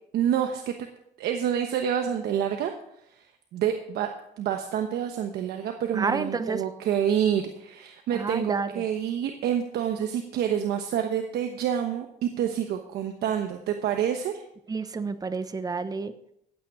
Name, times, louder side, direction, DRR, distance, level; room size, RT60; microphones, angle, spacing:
voice 1, 0.1-0.9 1.2-2.7 3.2-3.3 3.5-4.1 4.4-14.4, right 9 dB, 70° right, 5 dB, 1.1 m, -27 dB
voice 2, 5.9-6.6 8.1-8.9 14.7-16.1, right 4 dB, 20° right, 11 dB, 0.9 m, -29 dB
15.0 x 8.7 x 4.9 m, 0.76 s
cardioid pair, 110°, 17 cm